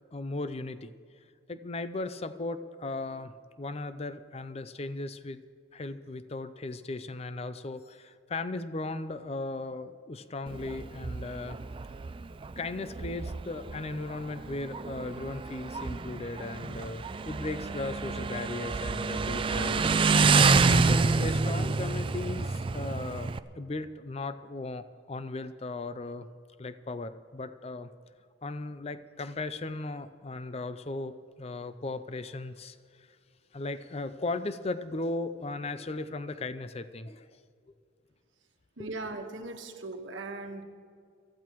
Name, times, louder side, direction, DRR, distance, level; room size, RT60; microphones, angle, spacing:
voice 1, 0.1-0.9 1.5-5.4 5.7-11.6 12.6-19.9 20.5-26.3 26.6-27.9 28.4-33.1 33.5-37.4 38.8-38.9, left 2 dB, 30° left, 12 dB, 0.5 m, -37 dB
Motorcycle, 10.5-23.4, right 4 dB, 25° right, 0.3 m, -28 dB
voice 2, 38.8-40.6, right 2 dB, 70° right, 4 dB, 1.3 m, -39 dB
23.5 x 14.5 x 3.1 m, 2.2 s
head